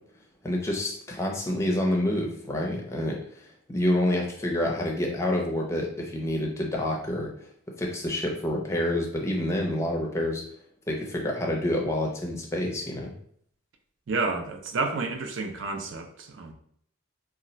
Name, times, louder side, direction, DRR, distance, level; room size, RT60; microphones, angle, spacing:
voice 1, 0.4-7.3 7.8-10.4 10.9-13.1, left 1 dB, 15° left, 0 dB, 0.5 m, -28 dB
voice 2, 14.1-16.5, right 3 dB, 65° right, 5 dB, 0.4 m, -30 dB
2.3 x 2.1 x 3.9 m, 0.64 s
head